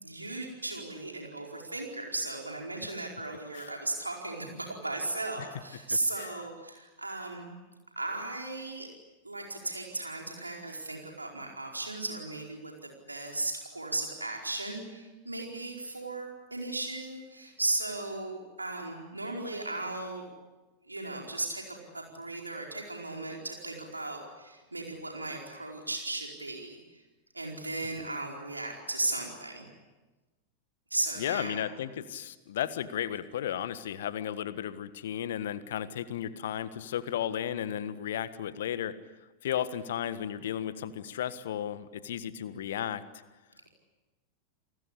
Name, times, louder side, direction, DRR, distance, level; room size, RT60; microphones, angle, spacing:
voice 1, 0.0-7.5 8.0-8.9 9.2-20.3 20.8-27.0 27.3-29.7 30.9-31.7, right 2 dB, 80° right, 1 dB, 4.6 m, -36 dB
voice 2, 5.9-6.4 31.2-39.0 39.4-43.0, left 10 dB, 60° left, 14 dB, 1.5 m, -34 dB
29.0 x 19.5 x 8.6 m, 1.2 s
figure-of-eight pair, 90°, 0 cm